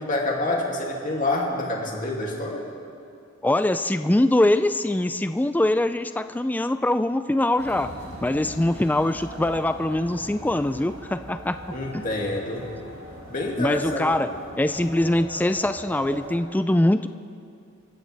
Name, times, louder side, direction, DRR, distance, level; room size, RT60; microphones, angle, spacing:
voice 1, 0.0-2.6 11.7-12.7 13.3-14.3, left 2 dB, 40° left, -2 dB, 2.6 m, -27 dB
voice 2, 3.4-7.9 8.2-11.6 11.9-12.0 13.6-14.3 14.6-17.1, left 1 dB, 10° left, 10 dB, 0.3 m, -23 dB
sound 1, 7.6-16.4, right 1 dB, 75° right, 3.6 m, -40 dB
28.5 x 15.0 x 3.4 m, 2.5 s
head